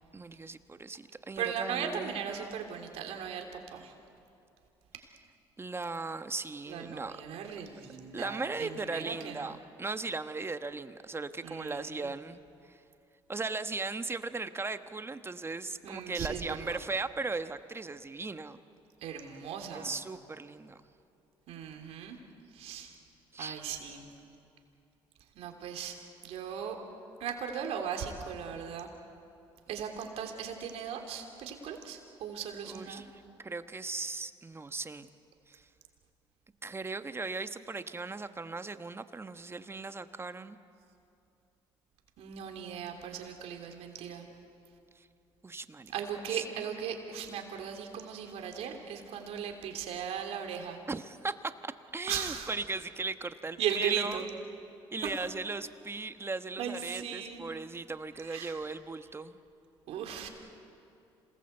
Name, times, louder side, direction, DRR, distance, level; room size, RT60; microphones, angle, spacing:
voice 1, 0.1-2.6 5.6-7.2 8.1-12.4 12.7-12.8 13.3-18.6 19.7-20.8 23.3-23.6 32.7-35.1 35.5-35.6 36.6-40.6 45.0-45.1 45.4-45.9 46.3-46.4 50.9-51.5 51.9-54.2 54.9-59.4, right 3 dB, 25° right, 10 dB, 1.2 m, -38 dB
voice 2, 1.4-3.9 6.7-9.5 11.4-12.1 15.8-16.8 19.0-19.9 21.5-22.2 22.5-22.9 23.4-24.1 25.3-26.0 26.2-26.8 27.2-28.9 29.7-33.0 42.2-44.3 45.9-50.8 52.1-52.5 53.6-54.3 55.0-55.1 56.6-57.4 58.2-58.6 59.9-60.3, right 8 dB, 75° right, 4 dB, 3.1 m, -37 dB
27.0 x 19.0 x 8.0 m, 2.6 s
supercardioid pair, 70°, 11 cm